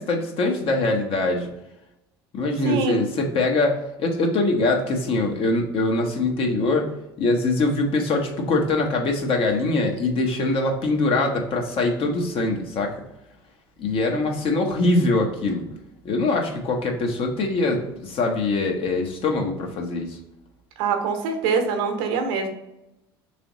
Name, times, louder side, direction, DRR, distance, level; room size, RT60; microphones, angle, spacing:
voice 1, 0.0-1.5 2.3-6.9 7.2-12.9 13.8-15.7 16.0-20.2, left 2 dB, 50° left, 2 dB, 0.9 m, -23 dB
voice 2, 2.6-3.0 20.8-22.5, right 5 dB, 70° right, 5 dB, 0.8 m, -24 dB
3.3 x 3.0 x 3.8 m, 0.89 s
hypercardioid pair, 75°, 12 cm